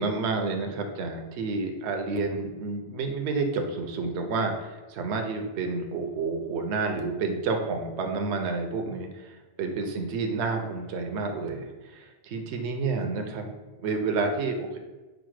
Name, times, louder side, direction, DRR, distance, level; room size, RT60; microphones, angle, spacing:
voice 1, 0.0-13.5 13.8-14.8, right 4 dB, 70° right, 4 dB, 0.9 m, -30 dB
5.0 x 2.1 x 4.6 m, 1.2 s
omnidirectional pair, 1.2 m